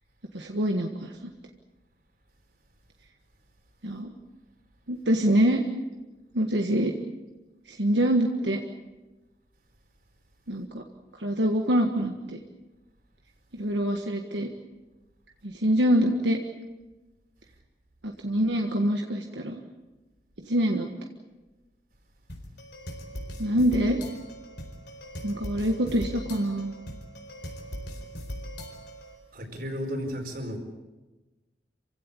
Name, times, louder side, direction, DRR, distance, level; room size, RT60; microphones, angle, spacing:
voice 1, 0.3-1.3 3.8-4.1 4.9-5.6 6.3-6.9 7.7-8.6 10.5-10.8 11.2-12.4 13.5-14.5 15.4-16.4 18.0-19.6 20.4-20.9 23.4-24.0 25.2-26.7, equal, 90° right, 3 dB, 1.6 m, -25 dB
sound 1, 22.3-29.1, equal, 70° left, 4.6 m, -39 dB
voice 2, 29.3-30.6, equal, 55° right, 4 dB, 4.6 m, -33 dB
27.0 x 16.5 x 8.6 m, 1.2 s
head